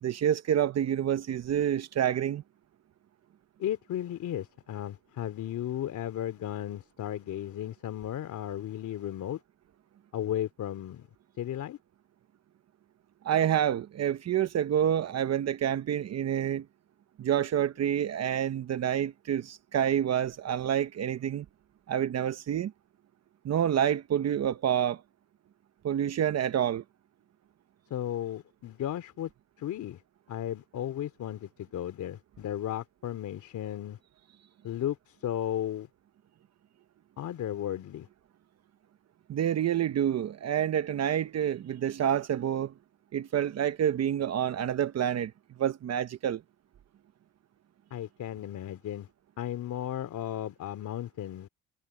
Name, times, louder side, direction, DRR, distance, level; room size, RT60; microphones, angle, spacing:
voice 1, 0.0-2.4 13.2-16.6 17.2-21.4 21.9-22.7 23.4-25.0 25.8-26.8 39.3-42.7 43.1-45.3 45.6-46.4, right 10 dB, 60° right, 1.1 m, -28 dB
voice 2, 3.6-9.4 10.1-11.1 11.4-11.8 27.9-29.3 29.6-30.0 30.3-34.0 34.6-35.9 37.2-38.1 47.9-49.1 49.4-51.5, left 11 dB, 75° left, 3.1 m, -35 dB
cardioid pair, 90°, 30 cm